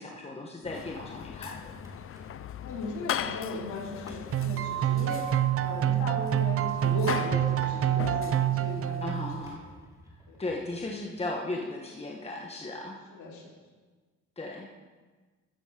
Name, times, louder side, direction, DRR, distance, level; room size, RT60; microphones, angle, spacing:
voice 1, 0.0-1.5 9.0-9.6 10.4-13.0 14.4-14.7, left 2 dB, 20° left, 0 dB, 1.3 m, -36 dB
sound 1, 0.6-9.5, left 9 dB, 45° left, 0.5 m, -39 dB
Drawer open or close, 1.3-2.4 3.6-5.2 6.6-7.9 9.2-10.9, right 1 dB, 10° right, 2.8 m, -52 dB
voice 2, 2.6-9.3 10.3-10.4 13.1-13.5, left 2 dB, 75° left, -2 dB, 2.9 m, -37 dB
sound 2, 4.3-9.5, right 12 dB, 50° right, 0.5 m, -27 dB
14.0 x 7.6 x 4.9 m, 1.3 s
cardioid pair, 90°, 30 cm